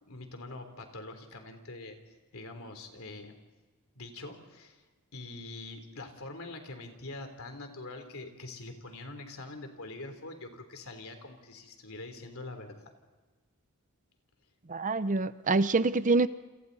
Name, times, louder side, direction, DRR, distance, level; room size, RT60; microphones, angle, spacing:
voice 1, 0.0-2.0 2.3-3.3 4.0-4.8 5.1-12.8, left 2 dB, 65° left, 6 dB, 3.5 m, -44 dB
voice 2, 14.7-16.3, right 3 dB, 35° right, 14 dB, 0.7 m, -26 dB
29.0 x 27.5 x 4.2 m, 1.3 s
head